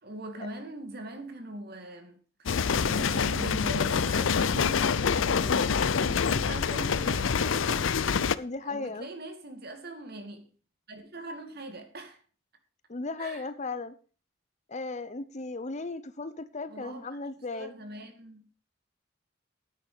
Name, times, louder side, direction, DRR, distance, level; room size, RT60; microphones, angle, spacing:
voice 1, 0.0-8.2 8.6-10.5 10.9-12.2 13.2-13.4 16.7-17.1 17.5-18.5, right 1 dB, 55° right, 2.4 m, -42 dB
sound 1, 2.5-8.4, left 6 dB, 85° left, 0.6 m, -26 dB
voice 2, 8.3-9.1 12.9-13.9 14.7-17.7, left 3 dB, 35° left, 0.9 m, -36 dB
10.5 x 9.5 x 5.0 m
head